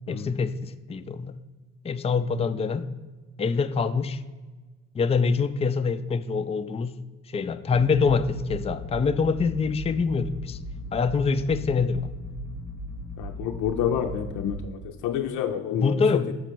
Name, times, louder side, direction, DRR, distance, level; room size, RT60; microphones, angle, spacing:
voice 1, 0.1-1.3 1.8-2.8 3.4-4.2 4.9-7.0 7.3-10.6 10.9-12.1 15.8-16.3, left 5 dB, 20° left, 10 dB, 0.4 m, -25 dB
sound 1, 7.7-14.6, left 1 dB, 65° right, 1.4 m, -37 dB
voice 2, 13.2-16.3, left 8 dB, 85° left, 4 dB, 0.5 m, -29 dB
7.0 x 5.1 x 4.5 m, 1.3 s
cardioid pair, 90°, 30 cm